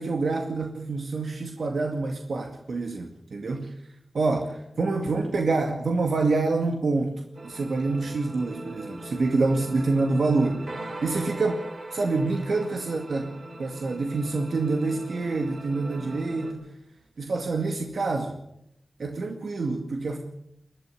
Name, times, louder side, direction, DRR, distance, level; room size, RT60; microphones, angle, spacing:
voice 1, 0.0-3.7 4.1-7.2 7.4-11.6 11.9-13.3 13.6-16.7 17.2-18.3 19.0-20.2, right 3 dB, 90° right, 3 dB, 2.2 m, -27 dB
sound 1, 7.3-16.5, right 1 dB, 70° right, 5.6 m, -40 dB
21.5 x 12.5 x 10.0 m, 0.78 s
wide cardioid pair, 90°, 0 cm